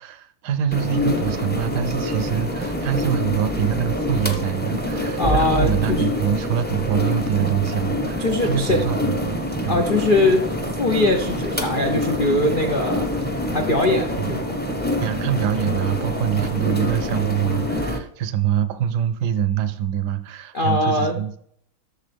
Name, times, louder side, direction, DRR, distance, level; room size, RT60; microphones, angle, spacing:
voice 1, 0.0-9.4 9.6-9.8 14.2-14.4 15.0-21.4, right 9 dB, 65° right, 12 dB, 1.1 m, -24 dB
sound 1, 0.7-18.0, left 1 dB, 10° left, 0.5 m, -26 dB
voice 2, 5.2-6.0 8.2-8.8 9.7-13.0 13.5-14.5 20.5-21.2, left 2 dB, 75° left, 3 dB, 0.4 m, -21 dB
11.5 x 7.0 x 3.4 m, 0.66 s
omnidirectional pair, 2.2 m